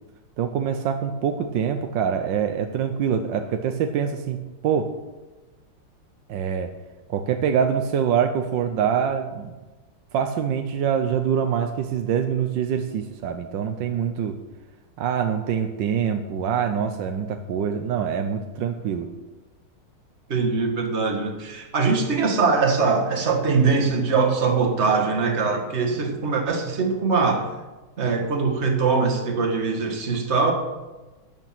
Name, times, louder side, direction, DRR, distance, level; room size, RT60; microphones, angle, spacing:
voice 1, 0.4-4.9 6.3-6.7 7.1-9.5 10.1-14.4 15.0-19.1, right 8 dB, 65° right, 6 dB, 1.3 m, -25 dB
voice 2, 20.3-27.4 28.0-30.5, right 4 dB, 35° right, 3 dB, 1.9 m, -22 dB
12.5 x 9.1 x 5.9 m, 1.2 s
omnidirectional pair, 2.4 m